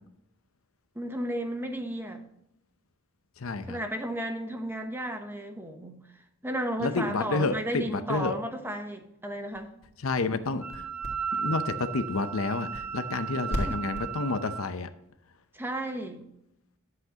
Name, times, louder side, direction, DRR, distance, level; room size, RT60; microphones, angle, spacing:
voice 1, 0.9-2.2 3.7-9.7 13.4-13.8 15.5-16.2, right 1 dB, 10° right, 5 dB, 1.0 m, -34 dB
voice 2, 3.4-3.8 6.8-8.3 10.0-10.9 11.4-14.9, left 3 dB, 75° left, 10 dB, 0.7 m, -30 dB
sound 1, 9.3-14.5, equal, 50° left, 2.2 m, -39 dB
Wind instrument woodwind instrument, 10.6-14.6, right 7 dB, 50° right, 3.5 m, -35 dB
10.5 x 7.8 x 2.9 m, 0.79 s
head